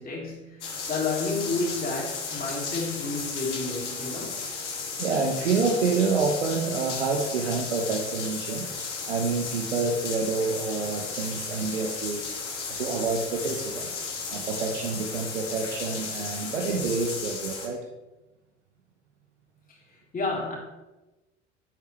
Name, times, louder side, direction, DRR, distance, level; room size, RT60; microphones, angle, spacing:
voice 1, 0.0-4.4 19.7-19.8 20.1-20.6, left 3 dB, 25° left, -3 dB, 3.8 m, -31 dB
sound 1, 0.6-17.7, left 5 dB, 75° left, 2.1 m, -34 dB
voice 2, 5.0-8.7 9.1-13.9 14.3-17.8, right 4 dB, 75° right, 2 dB, 1.1 m, -28 dB
11.0 x 8.2 x 3.3 m, 1.0 s
figure-of-eight pair, 75°, 36 cm